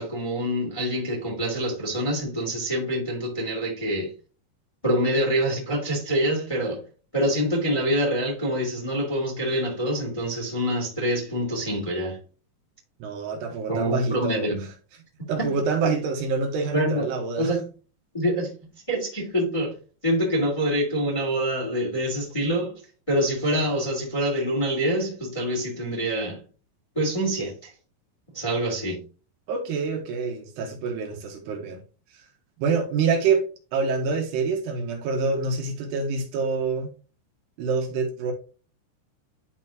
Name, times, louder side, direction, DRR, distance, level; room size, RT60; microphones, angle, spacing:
voice 1, 0.0-4.1 4.8-6.8 7.1-12.2 13.7-14.6 15.2-15.5 15.8-15.9 16.7-17.1 17.4-17.7 18.1-18.5 18.9-19.7 20.0-22.8 23.1-26.4 26.9-27.7 28.3-29.0, equal, 10° left, 2.1 m, -26 dB
voice 2, 13.0-14.5 15.3-17.5 29.5-31.8 32.1-32.2 32.6-33.4 33.7-36.9 37.6-38.3, right 4 dB, 75° right, 3.3 m, -26 dB
11.5 x 4.2 x 2.9 m
omnidirectional pair, 4.9 m